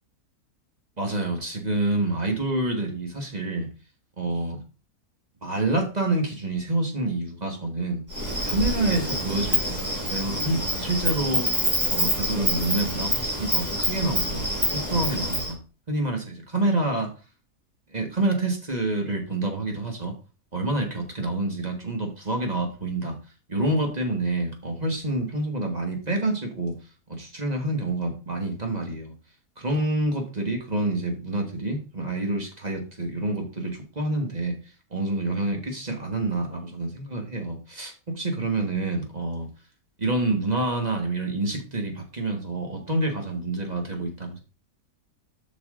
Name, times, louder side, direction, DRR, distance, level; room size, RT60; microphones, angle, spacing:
voice 1, 1.0-3.7 4.2-4.6 5.4-8.0 8.5-9.8 10.1-11.5 11.9-14.4 14.7-15.6 15.9-17.1 17.9-20.1 20.5-23.1 23.5-26.7 27.1-29.1 29.6-34.5 34.9-39.5 40.0-44.4, right 2 dB, 30° right, 3 dB, 1.5 m, -27 dB
Insect, 8.1-15.5, equal, 10° right, 3.1 m, -26 dB
7.9 x 6.0 x 3.7 m, 0.34 s
omnidirectional pair, 1.6 m